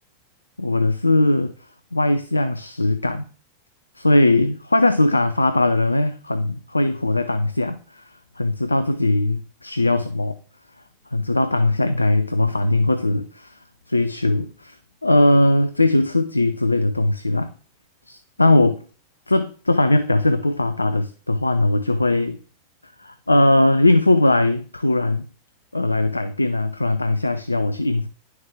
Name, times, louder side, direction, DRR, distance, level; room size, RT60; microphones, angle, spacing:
voice 1, 0.6-1.5 1.9-3.3 4.0-8.1 8.4-10.4 11.1-13.6 13.9-14.8 15.0-17.5 18.1-18.8 19.3-22.4 23.0-25.3 25.7-28.1, left 2 dB, 85° left, 0.4 m, -19 dB
10.5 x 6.4 x 3.5 m
figure-of-eight pair, 90°, 0 cm